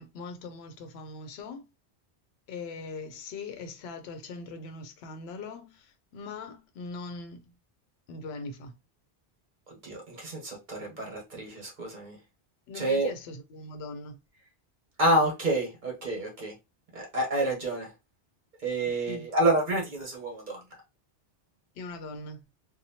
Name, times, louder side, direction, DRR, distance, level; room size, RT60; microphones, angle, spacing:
voice 1, 0.0-1.7 2.5-7.5 8.1-8.7 12.7-14.2 18.9-19.3 21.7-22.4, left 3 dB, 70° left, 0.8 m, -41 dB
voice 2, 9.7-12.2 12.7-13.1 15.0-16.5 16.9-17.9 18.6-20.6, right 1 dB, 45° right, 1.1 m, -28 dB
2.8 x 2.2 x 2.7 m
omnidirectional pair, 1.2 m